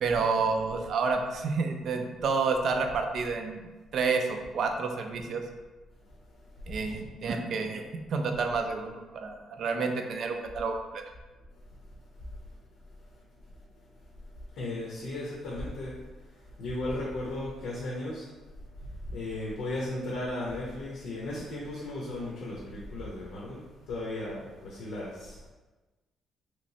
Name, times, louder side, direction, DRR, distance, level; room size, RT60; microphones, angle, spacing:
voice 1, 0.0-5.4 6.7-7.8 8.1-11.0, right 4 dB, 55° right, 5 dB, 0.3 m, -29 dB
voice 2, 6.1-6.6 13.8-13.9 14.5-16.0 16.3-18.3 18.8-25.5, left 1 dB, 75° left, -5 dB, 0.6 m, -36 dB
3.0 x 3.0 x 2.7 m, 1.2 s
cardioid pair, 135°, 0 cm